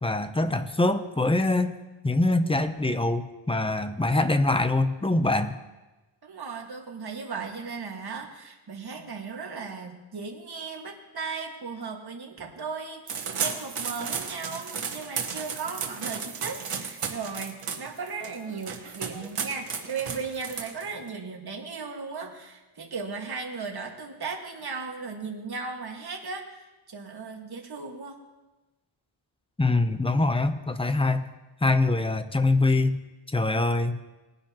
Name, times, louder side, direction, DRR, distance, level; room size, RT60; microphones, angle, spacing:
voice 1, 0.0-1.8 2.0-5.6 29.6-31.3 31.6-33.0 33.3-34.0, left 2 dB, 10° left, 10 dB, 0.6 m, -24 dB
voice 2, 6.2-26.5 26.9-28.2, right 4 dB, 50° right, 1 dB, 1.8 m, -36 dB
sound 1, 13.1-21.1, right 6 dB, 85° right, 1.5 m, -34 dB
20.0 x 10.5 x 3.0 m, 1.1 s
wide cardioid pair, 125°, 50 cm